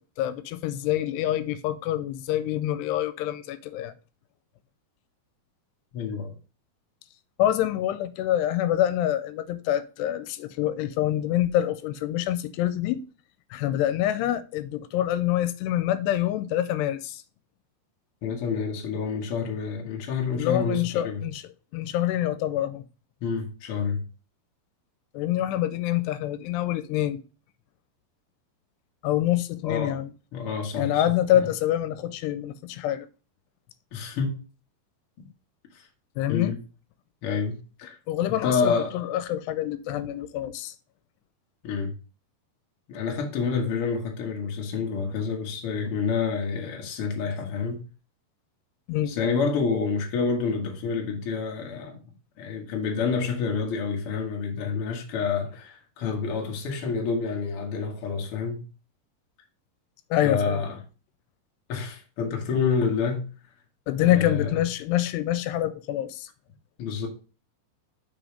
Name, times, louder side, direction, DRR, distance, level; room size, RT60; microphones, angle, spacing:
voice 1, 0.2-3.9 7.4-13.1 13.5-17.2 20.3-22.8 25.1-27.2 29.0-30.1 30.8-33.1 36.2-36.6 38.1-40.7 48.9-49.2 60.1-60.6 63.9-66.3, left 12 dB, 90° left, 2.7 m, -26 dB
voice 2, 5.9-6.3 18.2-21.2 23.2-24.0 29.6-30.0 30.3-31.0 31.3-31.4 33.9-34.4 36.3-36.6 37.2-37.9 38.4-38.9 41.6-41.9 42.9-47.8 49.1-52.0 52.4-58.6 60.2-60.8 61.7-63.2 64.0-64.6 66.8-67.1, left 5 dB, 55° left, 1.6 m, -28 dB
6.0 x 5.0 x 5.0 m
omnidirectional pair, 4.8 m